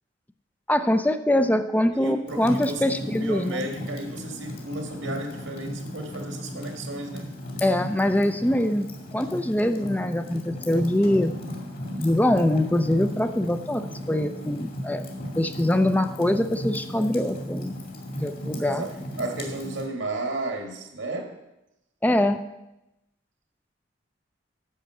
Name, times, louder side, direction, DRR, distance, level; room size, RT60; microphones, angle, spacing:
voice 1, 0.7-3.7 7.6-8.9 9.1-11.4 12.0-15.0 15.4-17.7 18.1-18.8 22.0-22.4, left 1 dB, 10° left, 9 dB, 0.5 m, -23 dB
voice 2, 1.9-7.3 18.6-21.4, right 2 dB, 85° right, 3 dB, 1.9 m, -33 dB
Fire, 2.3-19.9, equal, 50° left, 2.4 m, -36 dB
10.0 x 6.0 x 7.6 m, 0.91 s
head